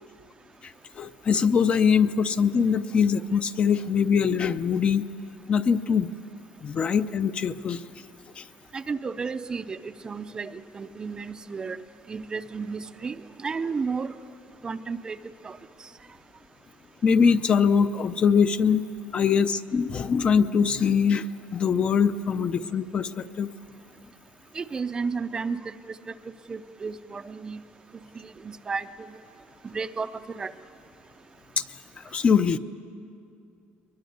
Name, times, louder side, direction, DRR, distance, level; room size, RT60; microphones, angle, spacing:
voice 1, 0.6-5.1 5.5-6.1 6.6-7.8 8.4-8.5 17.0-18.8 19.1-23.5 31.6-31.7 32.0-32.6, left 6 dB, 25° left, 12 dB, 0.5 m, -23 dB
voice 2, 8.7-11.8 12.1-14.1 14.6-15.2 15.4-15.6 24.5-25.7 26.1-26.2 26.5-27.6 28.2-28.9 29.7-30.5, right 5 dB, 20° right, 11 dB, 0.5 m, -32 dB
22.5 x 21.5 x 9.4 m, 2.5 s
cardioid pair, 165°, 4 cm